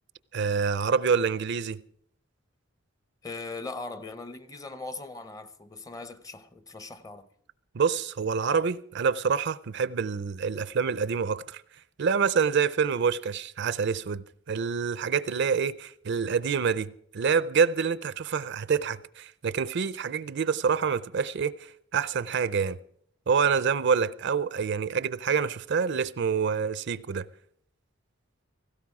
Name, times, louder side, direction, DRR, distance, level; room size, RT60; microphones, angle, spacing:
voice 1, 0.3-1.8 7.7-11.6 12.0-21.7 21.9-22.8 23.3-27.3, right 6 dB, 60° right, 0.5 m, -27 dB
voice 2, 3.2-7.3, left 3 dB, 20° left, 0.7 m, -40 dB
17.0 x 16.0 x 4.8 m
head